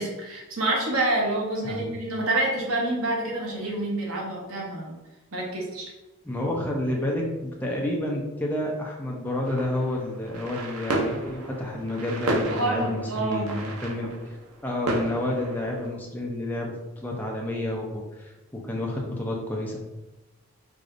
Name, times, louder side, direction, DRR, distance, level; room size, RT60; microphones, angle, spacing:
voice 1, 0.0-4.9 5.3-5.9 12.5-13.5, right 2 dB, 75° right, -2 dB, 1.0 m, -27 dB
voice 2, 6.2-14.1 14.6-19.8, left 1 dB, 10° left, -2 dB, 0.6 m, -30 dB
sound 1, 9.4-15.9, right 2 dB, 90° right, 0.6 m, -32 dB
4.8 x 2.7 x 2.5 m, 1.1 s
head